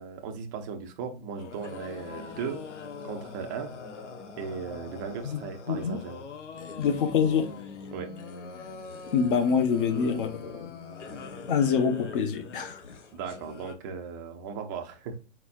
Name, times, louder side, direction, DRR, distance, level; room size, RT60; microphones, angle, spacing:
voice 1, 0.0-2.6 3.0-3.8 4.4-6.2 7.9-8.1 13.1-15.2, right 6 dB, 20° right, 0.4 m, -37 dB
sound 1, 1.4-13.7, left 4 dB, 85° left, 1.2 m, -42 dB
voice 2, 6.8-7.5 9.1-10.7 11.5-12.8, left 6 dB, 50° left, 0.9 m, -25 dB
4.3 x 4.1 x 2.4 m
hypercardioid pair, 150°, 35 cm